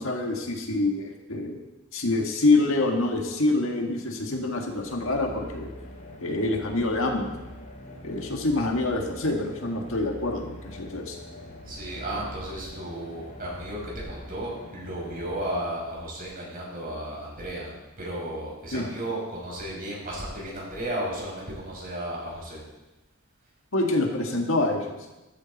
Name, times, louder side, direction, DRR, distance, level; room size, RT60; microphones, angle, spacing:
voice 1, 0.0-1.6 1.9-5.7 6.2-7.3 8.0-11.2 18.7-18.9 23.7-25.0, left 2 dB, 65° left, 2 dB, 1.9 m, -26 dB
sound 1, 4.3-16.2, left 1 dB, 35° left, 2.6 m, -43 dB
voice 2, 11.6-22.6, right 1 dB, 40° right, -3 dB, 5.6 m, -34 dB
13.5 x 13.0 x 4.2 m, 1.0 s
head